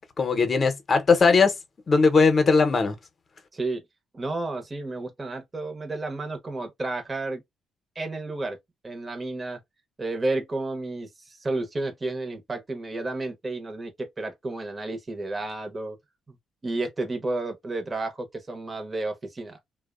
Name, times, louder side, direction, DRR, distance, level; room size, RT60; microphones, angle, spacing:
voice 1, 0.2-1.5 1.9-3.0, left 4 dB, 40° left, 0.7 m, -19 dB
voice 2, 3.5-3.8 4.1-7.4 8.0-8.6 8.8-9.6 10.0-16.0 16.3-16.4 16.6-19.6, right 2 dB, 25° right, 0.7 m, -31 dB
2.7 x 2.1 x 2.4 m
cardioid pair, 90°, 0 cm